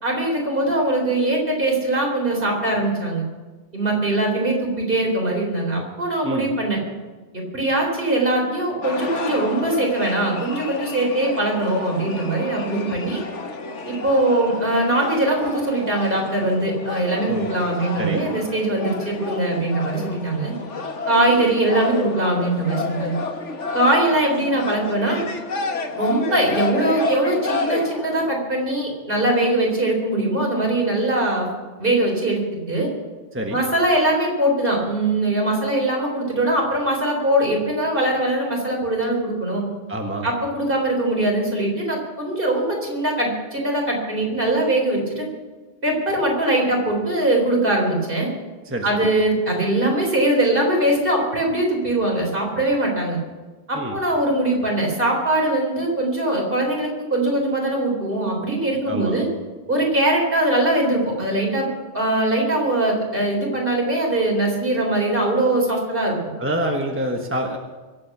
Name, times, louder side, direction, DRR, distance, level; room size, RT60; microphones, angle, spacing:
voice 1, 0.0-3.2 3.7-6.8 7.3-13.2 13.9-20.5 21.1-23.2 23.7-25.2 26.0-31.5 31.8-32.9 33.5-39.6 40.2-45.3 45.8-48.3 48.8-53.2 53.7-59.3 59.7-61.7 61.9-66.2, right 1 dB, 50° right, 0 dB, 4.2 m, -21 dB
sound 1, 8.8-28.4, left 4 dB, 80° left, 1.6 m, -31 dB
voice 2, 39.9-40.3 48.6-49.1 53.7-54.0 58.9-59.2 66.4-67.6, right 1 dB, 10° right, 2 dB, 1.2 m, -26 dB
23.5 x 8.5 x 6.1 m, 1.3 s
omnidirectional pair, 1.2 m